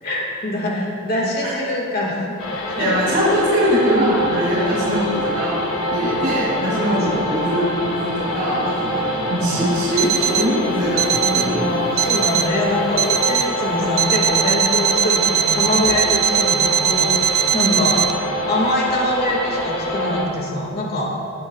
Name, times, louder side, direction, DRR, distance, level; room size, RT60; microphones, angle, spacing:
voice 1, 0.0-2.9 4.5-4.7 6.9-7.1 9.6-9.7 11.0-18.0 18.4-21.2, left 1 dB, 45° left, -2 dB, 2.0 m, -24 dB
sound 1, 2.4-20.3, equal, 90° left, 1.6 m, -25 dB
voice 2, 2.8-11.7 17.5-17.8, equal, 45° right, -10 dB, 2.5 m, -21 dB
Alarm, 10.0-10.5 11.0-11.5 12.0-12.5 13.0-13.5 14.0-18.1, right 9 dB, 75° right, 0.5 m, -20 dB
20.0 x 8.9 x 2.4 m, 2.7 s
head